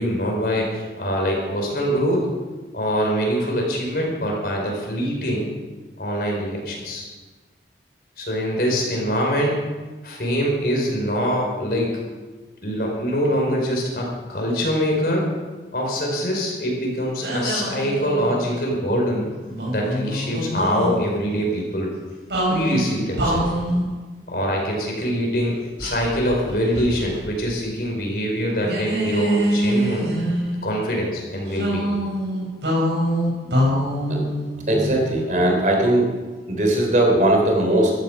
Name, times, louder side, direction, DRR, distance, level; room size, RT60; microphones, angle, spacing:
voice 1, 0.0-2.3 2.7-5.5 6.0-7.0 8.2-9.6 10.0-12.0 12.6-15.3 15.7-19.3 19.6-21.9 22.5-23.5 24.3-30.1 30.6-31.9, equal, 55° left, -1 dB, 5.0 m, -24 dB
sound 1, 17.2-18.5 19.5-21.0 22.3-23.9 25.8-27.3 27.5-27.7 28.6-30.7 31.5-35.3, equal, 90° right, 6.1 m, -24 dB
voice 2, 34.7-36.1 36.5-37.9, right 1 dB, 45° right, 1 dB, 3.5 m, -19 dB
15.0 x 14.0 x 5.3 m, 1.3 s
head